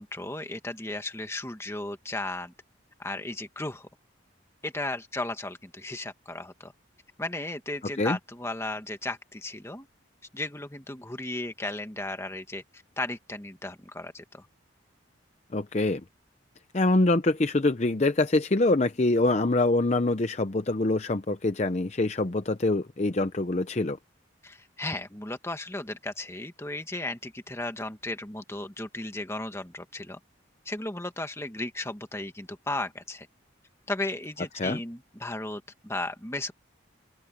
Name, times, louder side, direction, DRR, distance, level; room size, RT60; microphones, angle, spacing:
voice 1, 0.0-2.5 3.0-3.9 4.6-6.7 7.2-9.9 10.3-14.5 24.4-30.2 30.6-33.3 33.9-36.5, left 2 dB, 15° left, 1.5 m, -35 dB
voice 2, 15.5-16.0 16.7-24.0 34.6-34.8, left 2 dB, 35° left, 0.6 m, -25 dB
open air
head